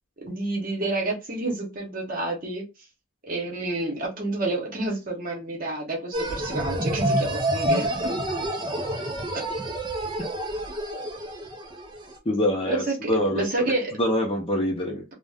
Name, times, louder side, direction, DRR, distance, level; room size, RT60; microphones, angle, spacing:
voice 1, 0.2-2.6 3.3-8.1 9.3-9.4 12.6-13.9 14.9-15.0, right 2 dB, 45° right, 0.9 m, -29 dB
sound 1, 6.1-12.1, right 1 dB, 20° right, 0.4 m, -28 dB
voice 2, 12.3-13.4 14.0-15.0, left 1 dB, 25° left, 0.6 m, -25 dB
2.5 x 2.1 x 3.4 m
head